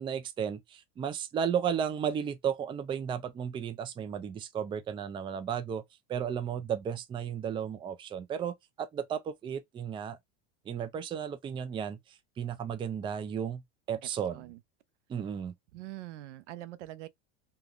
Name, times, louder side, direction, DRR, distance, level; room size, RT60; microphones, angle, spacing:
voice 1, 0.0-5.8 6.1-10.2 10.7-12.0 12.4-13.6 13.9-14.5 15.1-15.5, right 8 dB, 15° right, 0.3 m, -34 dB
voice 2, 14.0-14.6 15.7-17.1, right 15 dB, 85° right, 0.5 m, -44 dB
3.5 x 2.3 x 2.3 m
supercardioid pair, 115°, 35 cm